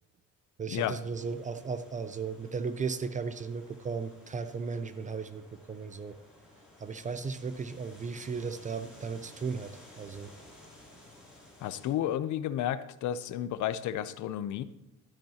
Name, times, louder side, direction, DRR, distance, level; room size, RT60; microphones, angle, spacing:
voice 1, 0.6-6.2 6.8-10.3, right 5 dB, 25° right, 11 dB, 0.4 m, -36 dB
sound 1, 1.1-11.9, left 1 dB, ahead, 3.0 m, -55 dB
voice 2, 11.6-14.6, left 11 dB, 65° left, 14 dB, 0.6 m, -32 dB
12.5 x 10.5 x 2.9 m, 0.95 s
cardioid pair, 155°, 32 cm